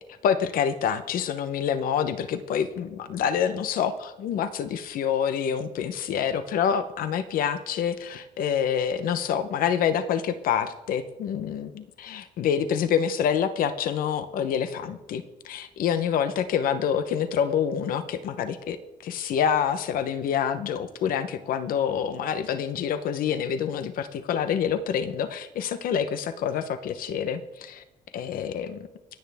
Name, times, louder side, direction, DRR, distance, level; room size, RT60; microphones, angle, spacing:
voice 1, 0.2-18.8 19.0-27.8 28.1-28.9, left 8 dB, 80° left, 11 dB, 0.9 m, -27 dB
26.5 x 9.1 x 3.5 m, 0.97 s
cardioid pair, 150°, 15 cm